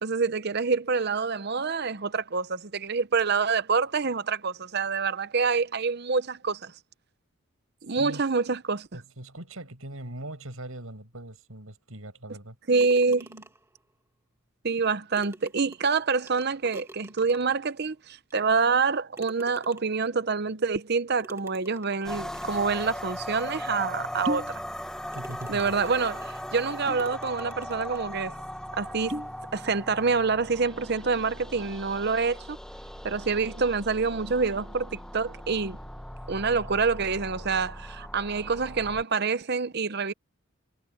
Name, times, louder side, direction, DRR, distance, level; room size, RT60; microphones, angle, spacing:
voice 1, 0.0-6.7 7.8-8.9 12.7-13.4 14.6-24.6 25.5-28.3 28.7-29.2 29.5-32.6 33.0-35.8 36.3-40.1, right 4 dB, 50° right, 0.8 m, -27 dB
voice 2, 7.9-8.2 8.9-12.6 25.1-25.7, right 1 dB, 80° right, 6.1 m, -41 dB
sound 1, 12.8-13.8 14.8-14.9 15.2-17.7 18.3-18.4 19.1-20.1 21.2-22.7 23.4-23.5 24.0-24.1 24.6-24.8 25.1-26.4 27.0-28.1, right 2 dB, 15° right, 2.0 m, -49 dB
sound 2, 22.0-39.0, equal, 5° left, 1.0 m, -39 dB
sound 3, 24.2-24.6 24.9-25.5 25.8-26.0 26.7-27.1 27.6-27.7 28.0-28.2 28.8-29.4 29.8-30.2, equal, 30° right, 2.0 m, -34 dB
head